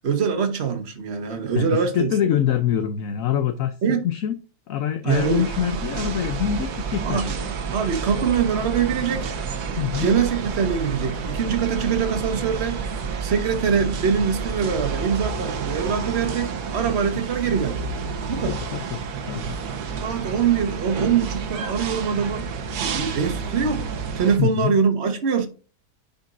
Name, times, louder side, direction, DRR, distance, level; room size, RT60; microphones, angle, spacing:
voice 1, 0.0-2.1 3.8-4.0 5.0-5.4 7.0-7.3 7.7-9.3 10.0-12.8 13.2-17.9 18.3-18.6 20.0-22.5 22.7-23.9 24.1-25.5, right 6 dB, 45° right, 1.5 m, -23 dB
voice 2, 1.5-3.7 4.0-4.4 4.7-7.5 9.8-10.1 18.4-19.6 24.4-24.8, left 10 dB, 70° left, 1.1 m, -25 dB
sound 1, 5.1-24.4, right 5 dB, 85° right, 1.5 m, -29 dB
10.0 x 5.3 x 2.6 m
omnidirectional pair, 1.6 m